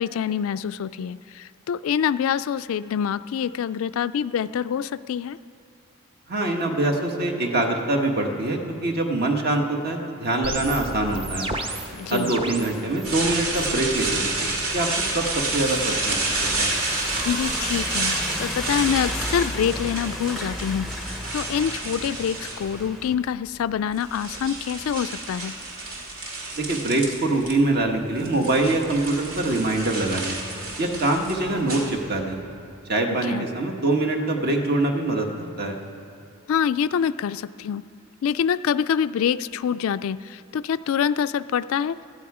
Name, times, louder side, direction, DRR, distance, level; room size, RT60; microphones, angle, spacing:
voice 1, 0.0-5.4 11.9-12.4 17.2-25.6 33.2-33.5 36.5-37.8 38.2-42.0, left 8 dB, 75° left, 15 dB, 0.3 m, -26 dB
voice 2, 6.3-11.5 12.1-14.9 15.1-16.7 26.5-30.4 30.8-32.4 32.9-35.8, right 2 dB, 50° right, 2 dB, 1.4 m, -24 dB
sound 1, 10.4-13.7 14.0-14.5 15.5-19.7, right 2 dB, 25° right, 0.9 m, -36 dB
sound 2, 10.9-23.1, left 1 dB, ahead, 0.6 m, -36 dB
sound 3, 13.0-23.0 23.7-27.5 27.8-32.4, right 2 dB, 85° right, 2.3 m, -30 dB
17.0 x 13.0 x 4.9 m, 2.5 s
head